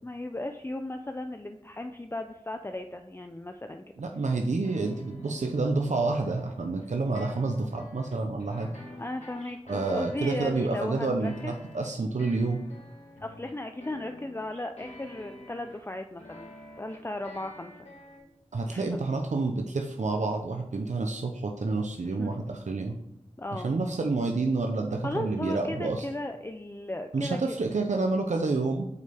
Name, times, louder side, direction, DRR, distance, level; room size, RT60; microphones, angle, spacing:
voice 1, 0.0-3.8 9.0-11.5 13.2-17.7 18.7-18.8 22.2-22.3 23.4-23.7 25.0-27.4, left 1 dB, 20° left, 6 dB, 0.5 m, -36 dB
voice 2, 4.0-8.7 9.7-12.6 18.5-23.0 23.5-26.0 27.1-28.9, right 3 dB, 85° right, 3 dB, 0.7 m, -29 dB
sound 1, 4.6-5.7 6.1-6.9 7.1-10.8 11.2-15.9 16.2-18.2, left 1 dB, 65° left, 1.9 m, -48 dB
7.9 x 5.4 x 3.4 m, 0.82 s
wide cardioid pair, 40°, 12 cm